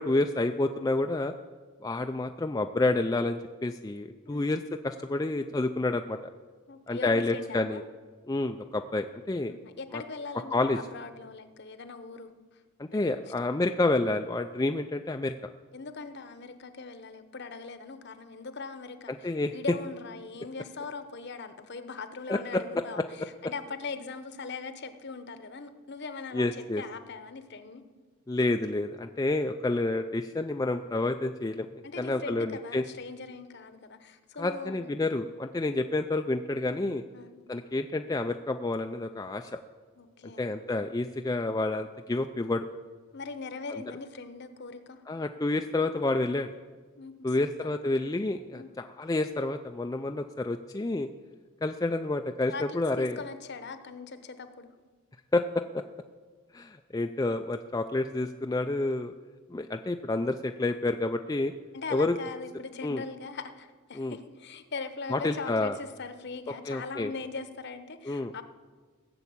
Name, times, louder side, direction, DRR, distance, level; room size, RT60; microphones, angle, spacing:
voice 1, 0.0-1.3 1.8-6.2 6.9-7.8 8.3-9.5 9.9-10.0 10.5-10.8 12.8-15.3 19.1-19.5 22.3-22.8 26.3-26.8 28.3-31.7 32.0-32.8 34.4-37.0 37.5-39.6 40.4-42.7 45.1-46.5 47.2-51.1 51.6-53.2 55.3-55.8 56.5-59.1 59.5-61.5 61.9-62.1 62.8-63.0 63.9-64.2 65.1-65.8 66.7-67.1 68.1-68.3, left 2 dB, 15° left, 5 dB, 0.3 m, -29 dB
voice 2, 6.7-7.8 9.5-12.6 12.9-13.0 15.7-27.8 31.8-35.0 37.1-37.3 40.0-40.5 43.1-45.0 47.0-47.7 48.5-48.7 52.5-54.7 61.7-68.4, left 4 dB, 50° left, 10 dB, 0.9 m, -40 dB
16.0 x 7.0 x 8.5 m, 1.5 s
head